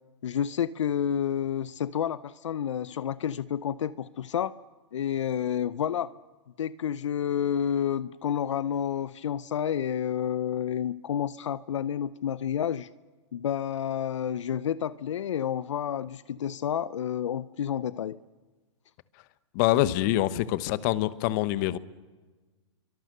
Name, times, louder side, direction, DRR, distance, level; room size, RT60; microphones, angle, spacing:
voice 1, 0.2-4.5 4.9-6.1 6.6-12.9 13.3-18.2, left 9 dB, 75° left, 17 dB, 0.7 m, -30 dB
voice 2, 19.5-21.8, left 15 dB, 40° left, 15 dB, 1.1 m, -25 dB
30.0 x 24.0 x 6.8 m, 1.3 s
hypercardioid pair, 140°, 16 cm